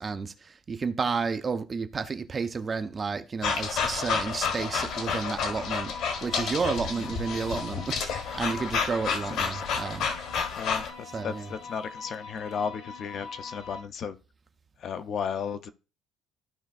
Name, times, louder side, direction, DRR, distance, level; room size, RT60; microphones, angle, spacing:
voice 1, 0.0-5.9 6.2-10.1 11.1-11.5, right 5 dB, 20° right, 0.4 m, -31 dB
sound 1, 3.4-10.9, left 6 dB, 55° left, 1.4 m, -30 dB
sound 2, 4.7-13.8, left 4 dB, 80° left, 1.8 m, -43 dB
voice 2, 9.4-9.7 10.6-14.2 14.8-15.7, left 7 dB, 40° left, 0.4 m, -34 dB
14.5 x 5.0 x 2.4 m
cardioid pair, 175°, 0 cm